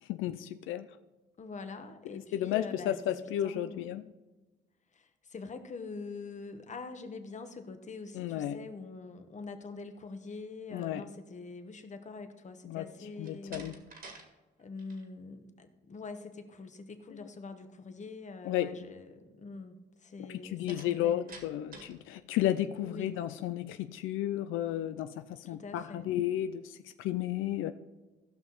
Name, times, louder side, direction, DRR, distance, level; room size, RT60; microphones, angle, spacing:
voice 1, 0.1-0.9 2.1-4.0 8.1-8.6 10.7-11.0 12.7-13.7 18.4-18.8 20.4-27.7, left 12 dB, 85° left, 10 dB, 0.4 m, -33 dB
voice 2, 1.4-4.0 4.9-13.8 14.6-21.4 22.8-23.2 25.4-26.1, left 4 dB, 35° left, 8 dB, 1.1 m, -45 dB
Slam, 13.2-14.3 14.6-15.0 20.7-22.0, right 3 dB, 45° right, 1.9 m, -50 dB
15.5 x 5.8 x 4.0 m, 1.2 s
cardioid pair, 90°, 20 cm